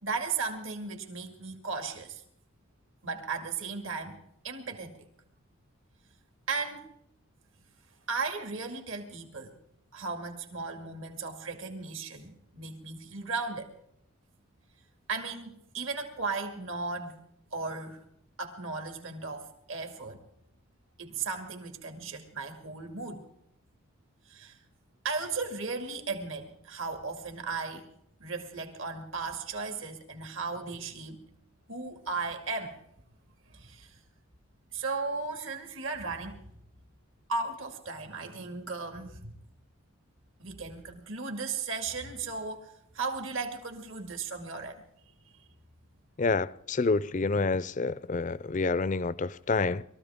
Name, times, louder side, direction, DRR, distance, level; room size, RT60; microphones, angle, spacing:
voice 1, 0.0-2.2 3.0-4.2 4.4-5.0 6.5-6.9 8.1-9.5 9.9-13.7 15.1-17.2 17.5-18.0 18.4-20.2 21.0-23.2 24.3-24.6 25.0-27.9 28.2-31.2 31.7-32.8 33.5-34.0 34.7-36.4 37.3-39.3 40.4-44.8, right 4 dB, 70° right, 2.3 m, -36 dB
voice 2, 46.2-49.8, left 3 dB, 35° left, 0.5 m, -28 dB
22.0 x 14.5 x 3.6 m
head